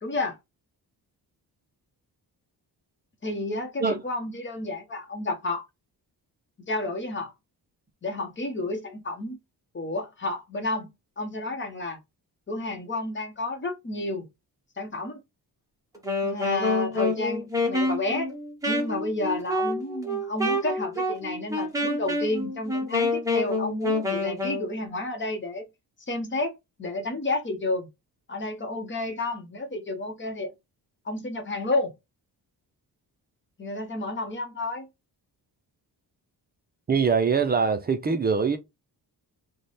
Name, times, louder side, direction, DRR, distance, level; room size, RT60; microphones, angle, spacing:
voice 1, 0.0-0.4 3.2-5.6 6.7-7.3 8.0-9.4 9.7-10.9 11.2-12.0 12.5-14.3 14.8-15.2 16.2-18.3 18.7-25.7 26.1-26.5 26.8-27.9 28.3-30.5 31.0-31.9 33.6-34.9, left 2 dB, 30° left, 0.8 m, -31 dB
Wind instrument woodwind instrument, 15.9-24.7, left 2 dB, 10° right, 0.9 m, -27 dB
voice 2, 36.9-38.6, right 5 dB, 25° right, 0.4 m, -23 dB
3.3 x 2.1 x 4.0 m
wide cardioid pair, 175°, 40 cm